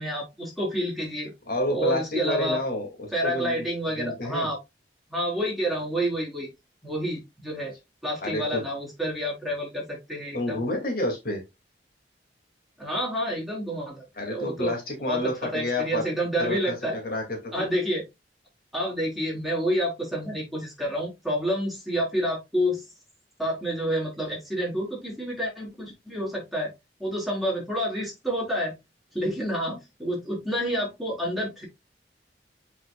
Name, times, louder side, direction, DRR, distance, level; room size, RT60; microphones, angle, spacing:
voice 1, 0.0-1.3 1.7-2.6 3.1-4.6 5.1-6.5 6.8-7.7 8.0-10.6 12.8-14.7 15.1-17.0 17.5-18.0 18.7-22.8 23.4-26.7 27.0-28.7 29.1-31.6, equal, ahead, -4 dB, 4.0 m, -29 dB
voice 2, 1.5-3.7 4.0-4.5 8.2-8.6 10.3-11.4 14.2-16.0 16.4-17.7, left 1 dB, 55° left, 1 dB, 2.3 m, -29 dB
7.6 x 5.6 x 2.3 m, 0.21 s
head